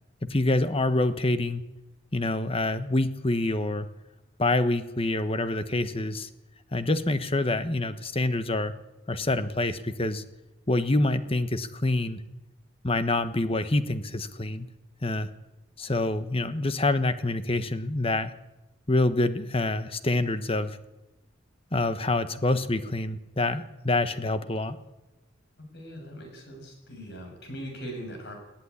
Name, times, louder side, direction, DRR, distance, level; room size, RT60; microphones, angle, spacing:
voice 1, 0.2-1.6 2.1-3.9 4.4-6.3 6.7-8.7 9.1-10.2 10.7-12.2 12.8-14.7 15.0-15.3 15.8-18.3 18.9-20.8 21.7-24.8, left 2 dB, 30° left, 11 dB, 1.2 m, -26 dB
voice 2, 25.7-28.3, equal, 55° left, 3 dB, 7.3 m, -40 dB
20.0 x 15.0 x 9.7 m, 1.0 s
head